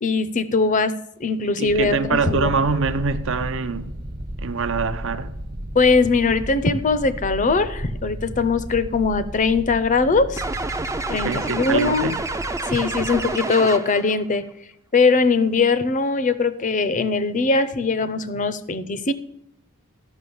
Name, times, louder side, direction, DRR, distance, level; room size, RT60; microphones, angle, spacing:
voice 1, 0.0-2.5 5.7-10.4 11.1-12.1 12.7-14.5 14.9-19.1, left 4 dB, 35° left, 0.5 m, -21 dB
voice 2, 1.4-3.9 4.4-5.3 11.1-12.1, right 4 dB, 60° right, 0.7 m, -24 dB
sound 1, 1.6-13.4, equal, 45° right, 1.2 m, -34 dB
sound 2, 10.4-14.1, right 2 dB, 15° right, 0.4 m, -28 dB
12.5 x 5.8 x 7.0 m
head